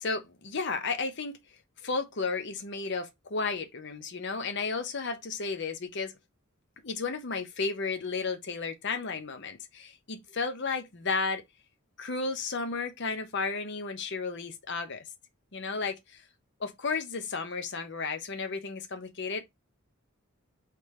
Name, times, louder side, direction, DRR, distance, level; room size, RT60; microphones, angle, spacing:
voice 1, 0.0-1.4 1.8-6.1 6.8-11.4 12.0-15.0 15.5-16.2 16.6-19.4, left 4 dB, 55° left, 0.8 m, -33 dB
3.4 x 3.3 x 4.3 m
head